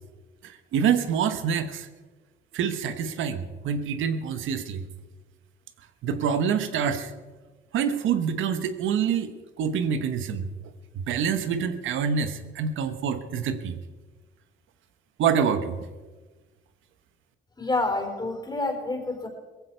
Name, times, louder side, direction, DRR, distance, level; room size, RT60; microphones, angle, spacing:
voice 1, 0.4-1.9 2.5-4.8 6.0-7.1 7.7-9.3 9.6-10.5 10.9-13.8 15.2-15.7, right 7 dB, 80° right, 10 dB, 1.2 m, -26 dB
voice 2, 17.6-19.3, left 2 dB, 20° left, 4 dB, 4.0 m, -28 dB
18.0 x 15.5 x 4.5 m, 1.3 s
cardioid pair, 90°, 20 cm